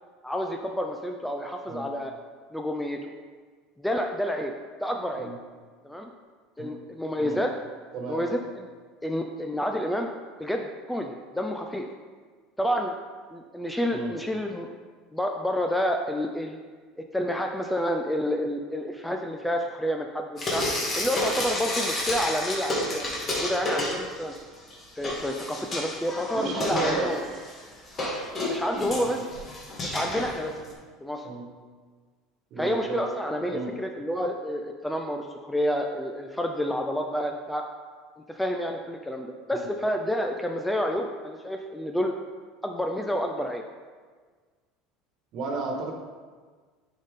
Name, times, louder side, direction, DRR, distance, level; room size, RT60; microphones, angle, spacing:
voice 1, 0.2-2.1 2.5-3.1 3.8-4.5 4.8-5.3 5.8-6.1 6.6-7.5 8.1-8.7 9.0-10.1 10.4-11.9 12.6-12.9 13.3-14.7 15.1-16.6 17.1-20.6 21.0-24.3 25.0-27.2 28.4-29.2 29.8-30.6 31.0-31.3 32.6-37.6 38.3-42.1 42.6-43.6, equal, 5° left, 3 dB, 0.4 m, -29 dB
Frying (food), 20.4-24.4 24.7-30.7, left 1 dB, 25° left, 1.6 m, -31 dB
voice 2, 26.3-27.1 29.0-29.2 31.2-31.4 32.5-33.0 33.5-33.7 39.5-39.7 45.3-45.9, right 3 dB, 45° right, 1 dB, 1.3 m, -33 dB
10.0 x 4.0 x 3.6 m, 1.5 s
cardioid pair, 145°, 0 cm